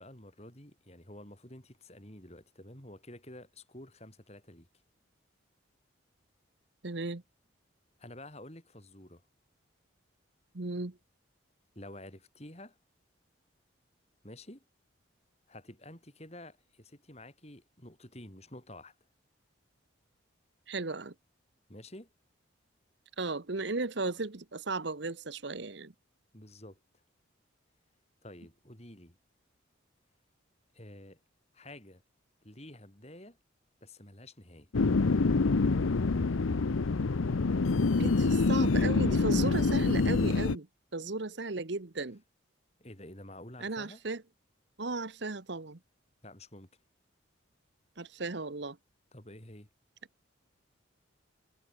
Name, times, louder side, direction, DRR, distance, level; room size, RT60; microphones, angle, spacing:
voice 1, 0.0-4.7 8.0-9.2 11.8-12.8 14.2-14.6 15.5-19.0 21.7-22.1 26.3-26.8 28.2-29.2 30.7-31.2 31.5-32.0 32.4-33.4 33.8-34.7 42.8-44.0 46.2-46.7 49.1-49.7, left 1 dB, 30° left, 5.4 m, -50 dB
voice 2, 6.8-7.2 10.5-11.0 20.7-21.1 23.2-25.9 37.9-40.7 40.9-42.2 43.6-44.2 44.8-45.8 48.0-48.8, right 3 dB, 60° right, 1.1 m, -35 dB
sound 1, 34.7-40.6, left 3 dB, 90° left, 0.7 m, -26 dB
head